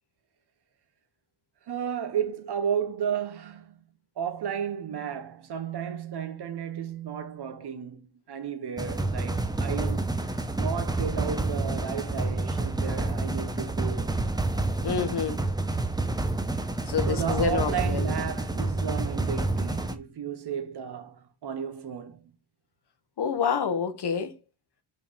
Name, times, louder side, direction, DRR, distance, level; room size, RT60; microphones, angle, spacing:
voice 1, 1.7-3.8 4.2-10.1 10.5-14.1 17.1-22.3, right 8 dB, 55° right, 1.0 m, -33 dB
sound 1, 8.8-19.9, right 2 dB, 10° right, 0.8 m, -28 dB
voice 2, 14.8-15.4 16.9-18.1 23.2-24.3, left 6 dB, 55° left, 1.3 m, -28 dB
5.7 x 4.6 x 5.0 m
wide cardioid pair, 125°, 48 cm